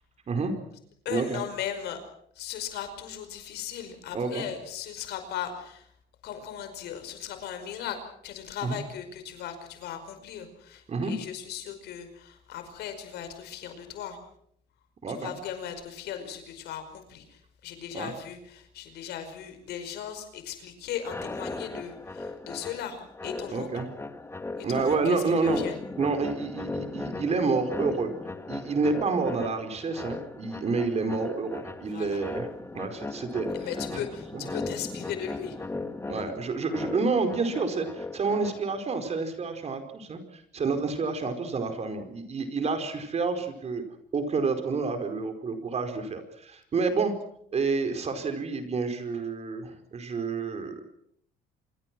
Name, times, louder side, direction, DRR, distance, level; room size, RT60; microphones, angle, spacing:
voice 1, 0.3-0.6 1.1-1.4 4.1-4.4 8.6-8.8 10.9-11.1 15.0-15.3 17.9-18.1 23.5-23.9 24.6-25.6 26.0-28.1 28.5-33.7 33.9-34.0 34.3-34.5 36.1-43.8 44.1-47.1 47.5-50.8, right 4 dB, 40° right, 7 dB, 4.9 m, -29 dB
voice 2, 1.1-2.0 2.4-5.9 6.2-14.2 15.1-23.7 24.6-25.8 31.8-32.2 33.5-35.6, left 9 dB, 80° left, 8 dB, 5.3 m, -37 dB
sound 1, 21.0-38.9, left 3 dB, 15° left, 2.0 m, -38 dB
27.0 x 22.5 x 6.2 m, 0.69 s
cardioid pair, 110°, 17 cm